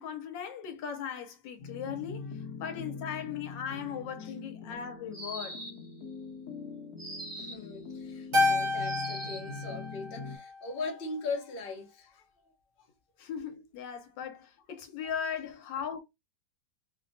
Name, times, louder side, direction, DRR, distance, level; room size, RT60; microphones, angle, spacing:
voice 1, 0.0-5.6 13.2-16.0, left 8 dB, 85° left, 1.4 m, -38 dB
sound 1, 1.6-10.4, left 4 dB, 65° left, 1.1 m, -43 dB
sound 2, 5.1-5.9 7.0-7.7 8.8-9.5, right 1 dB, 25° right, 0.6 m, -42 dB
voice 2, 7.4-12.2, left 3 dB, 45° left, 0.7 m, -39 dB
Keyboard (musical), 8.3-10.8, left 2 dB, 55° right, 1.1 m, -30 dB
3.1 x 2.2 x 2.6 m
omnidirectional pair, 2.0 m